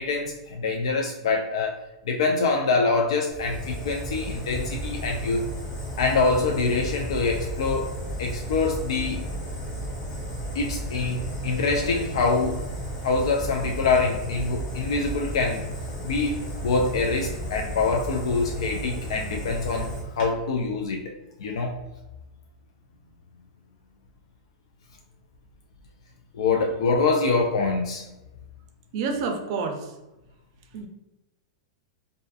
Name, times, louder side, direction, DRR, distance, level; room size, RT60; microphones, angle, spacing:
voice 1, 0.0-1.7 2.1-5.5 6.0-7.9 8.2-9.2 10.5-12.6 13.0-15.6 16.0-19.9 20.2-21.1 21.4-21.8 26.3-28.0, left 4 dB, 80° left, 2 dB, 0.3 m, -25 dB
Fire, 3.3-20.3, equal, 35° left, 1.1 m, -33 dB
voice 2, 28.9-29.9 30.7-30.9, right 4 dB, 55° right, 4 dB, 0.4 m, -28 dB
2.4 x 2.3 x 2.4 m, 1.0 s
supercardioid pair, 140°, 3 cm